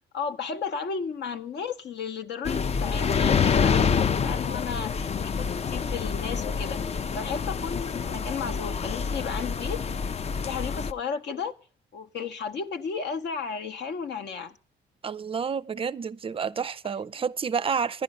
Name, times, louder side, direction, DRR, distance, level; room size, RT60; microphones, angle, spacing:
voice 1, 0.1-9.8 10.4-11.6 11.9-14.6, left 5 dB, 60° left, 0.9 m, -34 dB
sound 1, 2.4-10.9, left 6 dB, 30° left, 0.5 m, -27 dB
voice 2, 15.0-18.0, right 6 dB, 30° right, 0.5 m, -29 dB
11.0 x 10.5 x 5.3 m
cardioid pair, 90°, 20 cm